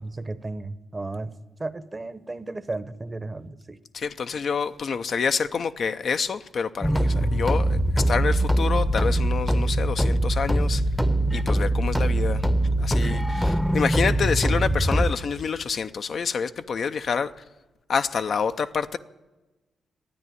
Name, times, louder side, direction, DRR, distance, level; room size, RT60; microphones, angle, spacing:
voice 1, 0.0-1.3 1.6-3.8, right 2 dB, 30° right, 0.9 m, -34 dB
voice 2, 3.9-10.8 11.3-12.4 12.8-17.3 17.9-19.0, left 6 dB, 60° left, 0.5 m, -27 dB
sound 1, 6.8-15.1, right 1 dB, ahead, 0.8 m, -22 dB
12.5 x 9.4 x 9.3 m
hypercardioid pair, 45°, 0 cm